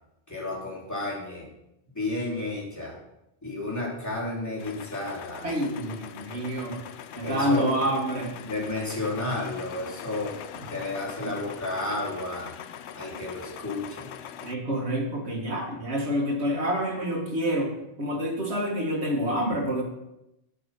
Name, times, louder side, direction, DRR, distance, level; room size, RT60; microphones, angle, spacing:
voice 1, 0.3-1.5 1.9-2.9 3.4-5.4 7.2-7.7 8.4-10.4 10.7-12.5 12.9-14.1, left 2 dB, 15° left, -6 dB, 3.1 m, -32 dB
sound 1, 4.6-14.6, left 9 dB, 90° left, 0.9 m, -42 dB
voice 2, 5.4-6.9 7.2-8.4 14.4-19.8, equal, 75° right, 0 dB, 2.0 m, -27 dB
12.0 x 5.3 x 5.7 m, 0.88 s
omnidirectional pair, 1.1 m